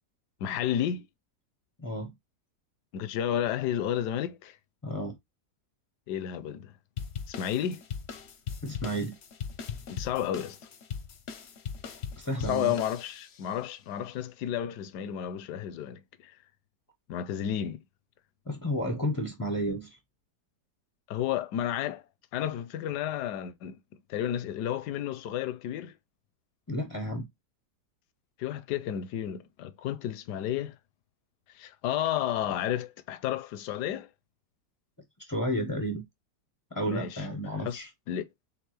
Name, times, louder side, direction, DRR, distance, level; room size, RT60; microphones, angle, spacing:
voice 1, 0.4-1.1 2.9-4.6 6.1-6.7 7.3-7.8 9.9-10.6 12.4-16.3 17.1-17.8 21.1-22.0 22.3-23.8 24.1-25.9 28.4-30.8 31.5-34.1 36.9-37.2 37.6-38.3, left 10 dB, 75° left, 1.1 m, -32 dB
voice 2, 1.8-2.1 4.8-5.2 8.6-9.2 12.2-12.7 18.5-20.0 26.7-27.3 35.3-36.0 36.7-37.9, equal, 25° left, 0.5 m, -32 dB
sound 1, 7.0-13.5, left 7 dB, 55° left, 0.7 m, -40 dB
4.5 x 3.5 x 3.1 m
omnidirectional pair, 1.9 m